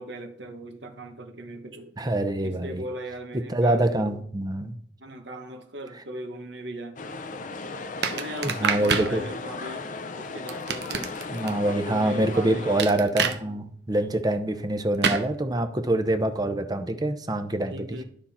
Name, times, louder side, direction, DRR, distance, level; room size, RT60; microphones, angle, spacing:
voice 1, 0.0-1.9 2.4-4.2 5.0-7.0 8.1-9.9 10.1-11.1 11.6-12.8 17.7-18.0, right 1 dB, 90° right, 1.4 m, -38 dB
voice 2, 2.0-2.8 3.5-4.8 8.4-9.2 11.3-17.9, right 1 dB, 20° right, 0.7 m, -25 dB
sound 1, 7.0-12.8, left 3 dB, 45° left, 0.6 m, -36 dB
sound 2, 8.0-9.1 10.5-11.5 12.8-13.4 15.0-15.2, right 6 dB, 70° right, 0.9 m, -26 dB
12.0 x 5.7 x 4.3 m
head